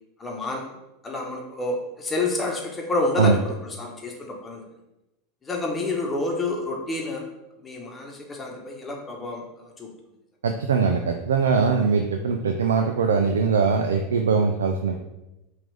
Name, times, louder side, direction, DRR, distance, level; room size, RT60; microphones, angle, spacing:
voice 1, 0.2-0.7 1.0-4.6 5.4-7.2 7.6-9.9, left 2 dB, 20° left, 0 dB, 1.1 m, -29 dB
voice 2, 10.4-14.9, right 5 dB, 80° right, 4 dB, 0.3 m, -21 dB
5.8 x 2.6 x 3.4 m, 0.94 s
hypercardioid pair, 90°, 0 cm